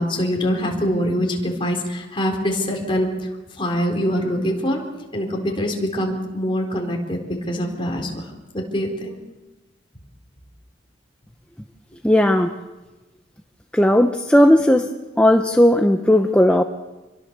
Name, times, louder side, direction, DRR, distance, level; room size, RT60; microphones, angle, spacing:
voice 1, 0.0-3.3 3.6-4.8 5.1-9.2, equal, 30° left, 1 dB, 4.3 m, -24 dB
voice 2, 12.0-12.5 13.7-14.9 15.2-16.6, left 1 dB, 5° left, 4 dB, 0.9 m, -15 dB
27.0 x 23.0 x 6.8 m, 1.1 s
head